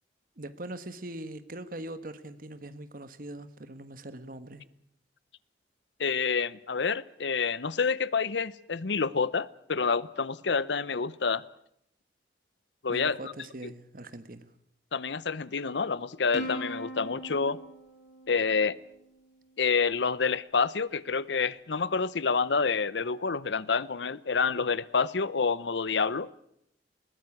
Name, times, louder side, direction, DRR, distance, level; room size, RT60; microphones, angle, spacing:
voice 1, 0.4-4.7 12.9-14.5, right 1 dB, 50° right, 12 dB, 1.4 m, -41 dB
voice 2, 6.0-11.4 12.8-13.3 14.9-17.6 18.3-18.8 19.6-26.4, left 5 dB, 80° left, 19 dB, 0.8 m, -28 dB
Plucked string instrument, 16.3-19.1, equal, 40° left, 6.2 m, -40 dB
21.0 x 15.5 x 9.7 m, 0.74 s
head